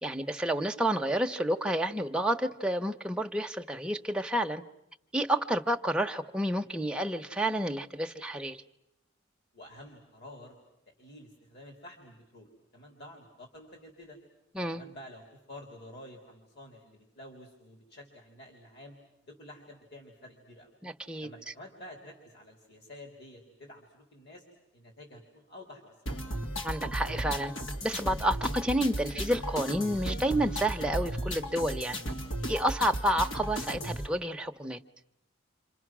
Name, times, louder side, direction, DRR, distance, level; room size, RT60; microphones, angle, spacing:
voice 1, 0.0-4.6 5.1-8.6 14.5-14.8 20.8-21.3 26.6-27.5 27.8-32.0 32.5-34.8, right 1 dB, 5° right, 4 dB, 0.9 m, -30 dB
voice 2, 9.5-10.6 11.0-12.5 12.7-14.2 14.7-19.0 19.2-20.7 21.2-24.4 24.7-26.0, left 1 dB, 60° left, 2 dB, 3.5 m, -50 dB
sound 1, 26.1-34.1, equal, 75° left, 2.2 m, -35 dB
30.0 x 26.5 x 6.2 m, 0.88 s
head